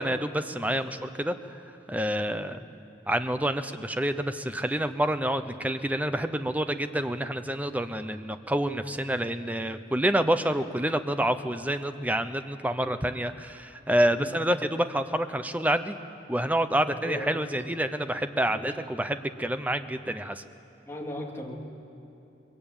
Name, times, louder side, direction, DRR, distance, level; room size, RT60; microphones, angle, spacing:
voice 1, 0.0-1.4 1.9-2.6 3.1-15.9 16.3-20.4, right 1 dB, 10° right, 9 dB, 0.7 m, -28 dB
voice 2, 16.9-17.4 18.5-19.1 20.9-21.5, left 1 dB, 15° left, -3 dB, 3.0 m, -39 dB
23.0 x 22.0 x 9.0 m, 2.9 s
head